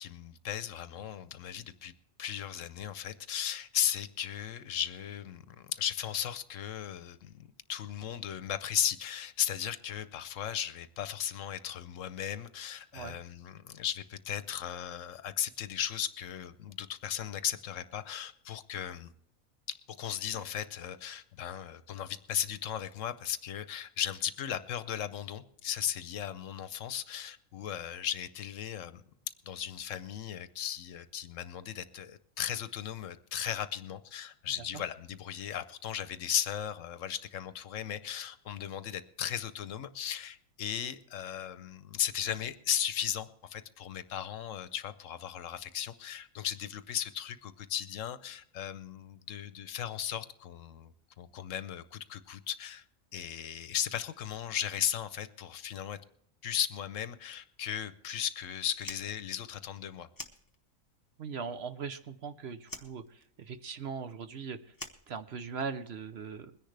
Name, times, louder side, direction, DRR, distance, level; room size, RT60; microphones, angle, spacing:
voice 1, 0.0-1.9 2.2-19.1 19.7-29.0 29.5-50.9 51.2-52.8 53.1-56.0 56.4-60.1, left 10 dB, 70° left, 13 dB, 1.0 m, -36 dB
Fire, 58.7-61.0 61.3-62.3 62.6-65.8, left 2 dB, 20° left, 0.7 m, -48 dB
voice 2, 61.2-64.7 65.1-66.5, right 5 dB, 55° right, 10 dB, 0.9 m, -40 dB
22.0 x 10.5 x 3.3 m, 0.67 s
omnidirectional pair, 1.4 m